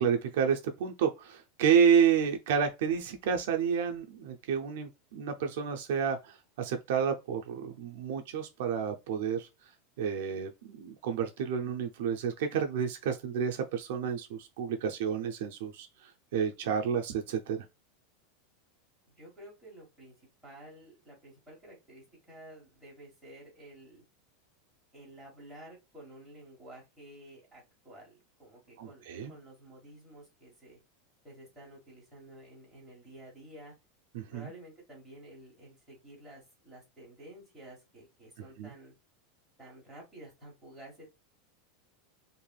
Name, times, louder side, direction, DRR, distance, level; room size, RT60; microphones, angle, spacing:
voice 1, 0.0-9.5 10.0-17.6 28.8-29.3 34.1-34.5 38.6-38.7, right 7 dB, 60° right, 0.4 m, -30 dB
voice 2, 19.1-20.1 20.4-24.0 24.9-30.8 31.2-33.8 34.3-38.9 39.6-41.0, right 1 dB, ahead, 1.3 m, -51 dB
3.2 x 2.5 x 2.2 m
supercardioid pair, 180°, 0 cm